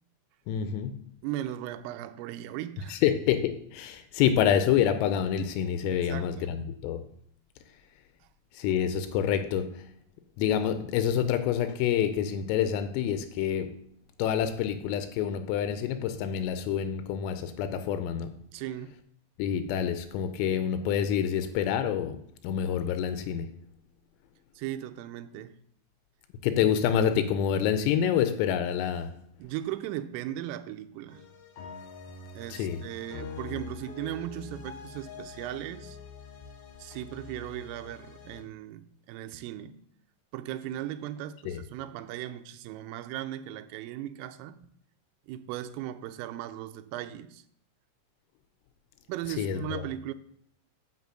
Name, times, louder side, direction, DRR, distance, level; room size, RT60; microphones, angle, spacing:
voice 1, 0.5-1.0 2.9-7.0 8.6-9.8 10.4-13.7 14.2-18.4 19.4-22.2 22.4-23.5 26.4-29.2 32.6-32.8 41.5-41.6 49.4-49.8, left 9 dB, 90° left, 3.3 m, -27 dB
voice 2, 1.2-3.0 5.9-6.6 18.5-19.0 24.6-25.6 29.4-31.2 32.3-36.0 36.8-39.8 40.3-44.7 45.3-47.4 49.1-50.1, right 12 dB, 85° right, 3.2 m, -37 dB
sound 1, 31.1-38.4, left 5 dB, 65° left, 2.9 m, -45 dB
8.3 x 6.5 x 7.7 m
omnidirectional pair, 5.9 m